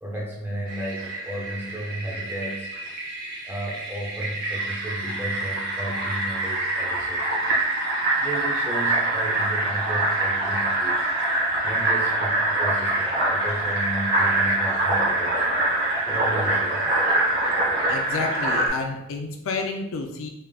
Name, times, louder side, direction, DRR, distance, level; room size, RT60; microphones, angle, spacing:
voice 1, 0.0-2.7 3.4-7.5 8.2-15.7 16.1-16.9, right 1 dB, 10° right, -3 dB, 0.7 m, -34 dB
Fill (with liquid), 0.7-18.7, right 2 dB, 45° right, 1.1 m, -25 dB
voice 2, 17.9-20.3, left 3 dB, 60° left, 4 dB, 0.4 m, -30 dB
3.5 x 3.4 x 2.3 m, 0.84 s
head